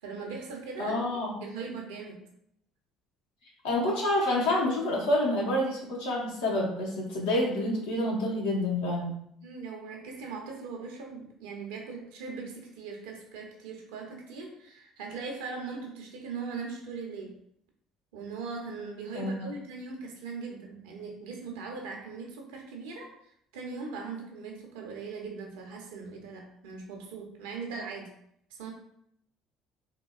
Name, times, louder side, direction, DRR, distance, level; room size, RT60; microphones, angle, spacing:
voice 1, 0.0-2.2 9.4-17.3 18.1-23.1 23.5-28.1 28.5-28.7, right 4 dB, 80° right, 1 dB, 0.6 m, -40 dB
voice 2, 0.8-1.4 3.6-9.1 19.1-19.5, left 1 dB, 80° left, -4 dB, 0.9 m, -28 dB
3.7 x 2.3 x 2.3 m, 0.71 s
hypercardioid pair, 60°, 0 cm